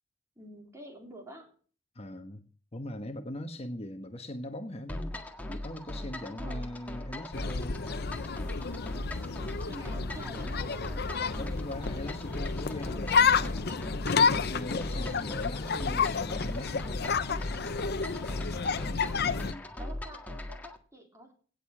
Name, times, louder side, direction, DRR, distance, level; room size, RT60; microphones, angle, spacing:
voice 1, 0.4-1.5 6.2-6.7 9.7-10.9 18.8-19.1 19.8-21.3, equal, 15° right, 3.4 m, -47 dB
voice 2, 1.9-5.2 5.5-7.8 11.4-13.6 14.5-17.1 19.4-19.8, left 1 dB, 35° left, 1.2 m, -41 dB
sound 1, 4.9-20.8, left 1 dB, 10° left, 1.7 m, -39 dB
sound 2, 7.3-19.5, left 5 dB, 60° left, 0.7 m, -30 dB
17.5 x 6.6 x 7.1 m
head